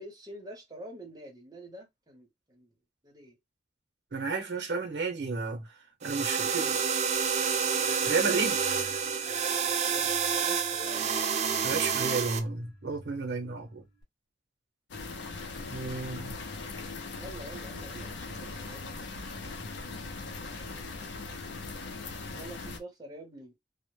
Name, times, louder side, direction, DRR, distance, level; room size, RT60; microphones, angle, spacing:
voice 1, 0.0-2.7 3.0-3.4 9.8-11.1 17.1-18.9 22.3-23.5, right 1 dB, 20° right, 0.8 m, -46 dB
voice 2, 4.1-5.7 6.0-6.8 8.0-8.8 11.6-13.8 15.7-16.4, right 4 dB, 70° right, 0.7 m, -32 dB
sound 1, 6.0-12.4, right 6 dB, 35° right, 0.3 m, -28 dB
sound 2, 7.1-14.0, right 1 dB, 25° left, 0.9 m, -52 dB
sound 3, 14.9-22.8, left 3 dB, 75° left, 0.5 m, -40 dB
2.1 x 2.0 x 3.1 m
head